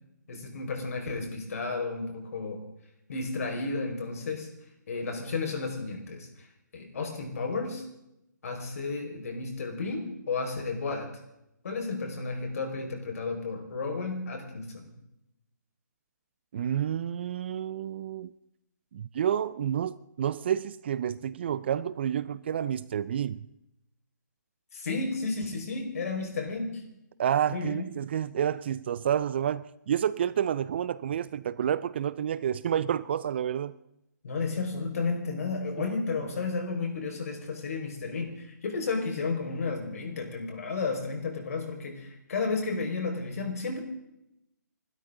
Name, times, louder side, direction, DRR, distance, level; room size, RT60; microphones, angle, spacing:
voice 1, 0.3-2.6 3.1-4.5 4.9-6.5 6.7-7.8 8.4-11.1 11.6-14.8 24.7-26.8 27.5-27.9 34.2-43.8, left 4 dB, 55° left, 5.1 m, -32 dB
voice 2, 16.5-18.3 18.9-23.5 27.2-33.7 35.8-35.9, right 9 dB, 35° right, 0.5 m, -29 dB
29.0 x 13.0 x 3.8 m
hypercardioid pair, 160°, 10 cm